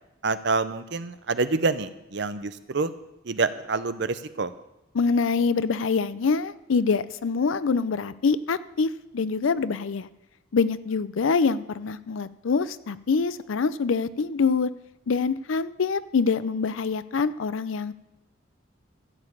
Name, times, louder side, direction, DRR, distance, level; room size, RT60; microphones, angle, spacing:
voice 1, 0.2-2.9 3.2-4.5, right 3 dB, 55° right, 13 dB, 0.6 m, -27 dB
voice 2, 4.9-10.1 10.5-14.7 15.1-17.9, left 5 dB, 75° left, 15 dB, 0.5 m, -25 dB
13.0 x 5.1 x 8.4 m, 0.93 s
head